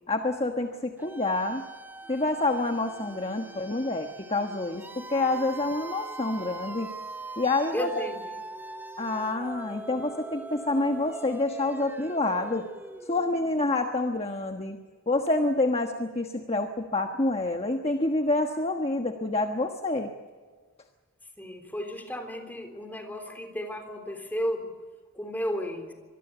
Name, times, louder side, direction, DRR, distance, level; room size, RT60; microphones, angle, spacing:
voice 1, 0.1-1.6 2.1-6.9 7.4-7.9 9.0-12.6 13.0-14.8 15.1-20.1, left 2 dB, 25° left, 4 dB, 1.3 m, -27 dB
sound 1, 1.0-13.8, right 2 dB, 10° right, 0.7 m, -42 dB
voice 2, 7.7-8.3 21.4-24.7 25.1-25.9, equal, 10° left, 4 dB, 3.5 m, -33 dB
25.5 x 20.5 x 7.0 m, 1.5 s
head